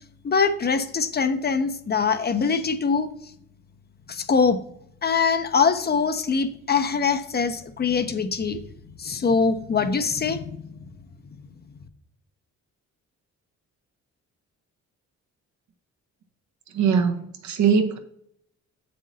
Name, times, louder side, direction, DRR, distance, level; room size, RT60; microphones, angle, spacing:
voice 1, 0.2-3.1 4.1-4.6 5.0-8.6 9.0-10.8, left 5 dB, 35° left, 10 dB, 0.6 m, -23 dB
voice 2, 16.7-18.0, right 6 dB, 75° right, 7 dB, 1.0 m, -21 dB
7.6 x 7.3 x 2.8 m, 0.69 s
cardioid pair, 100°, 29 cm